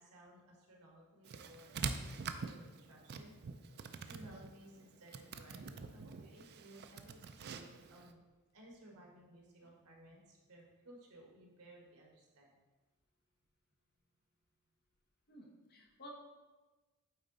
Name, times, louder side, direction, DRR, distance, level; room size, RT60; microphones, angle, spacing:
voice 1, 0.0-3.3 3.7-8.2 8.5-12.5, right 1 dB, 80° right, -1 dB, 1.6 m, -58 dB
sound 1, 1.2-8.1, right 5 dB, 45° right, 0.4 m, -45 dB
voice 2, 15.3-16.1, equal, 45° left, 0 dB, 1.2 m, -54 dB
8.5 x 4.0 x 4.0 m, 1.2 s
head